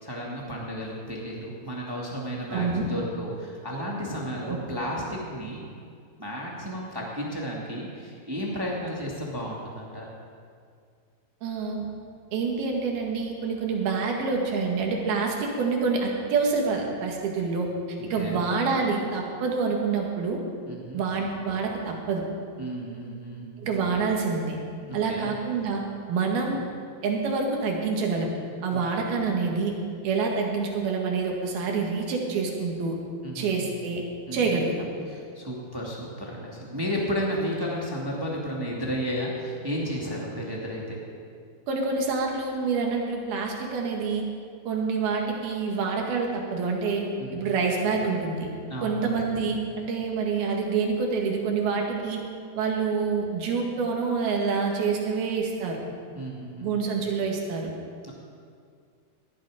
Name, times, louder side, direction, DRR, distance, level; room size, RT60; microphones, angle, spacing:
voice 1, 0.0-5.6 6.2-10.0 18.2-18.4 20.7-21.0 22.6-23.5 24.8-25.3 28.7-28.8 33.2-33.6 34.3-34.6 35.1-41.0 47.2-47.5 48.7-49.0 56.1-56.7 58.0-58.1, equal, 10° right, -3 dB, 1.3 m, -33 dB
voice 2, 2.5-2.9 4.4-4.6 11.4-11.9 12.3-20.4 20.9-22.2 23.6-24.6 24.9-25.8 26.1-26.6 27.0-28.3 28.6-29.7 30.0-33.0 33.4-34.0 34.3-34.9 41.7-44.3 44.7-47.1 47.3-48.5 48.8-52.2 52.5-55.8 56.6-57.7, right 4 dB, 75° right, 0 dB, 3.7 m, -27 dB
19.0 x 12.5 x 5.1 m, 2.2 s
omnidirectional pair, 4.5 m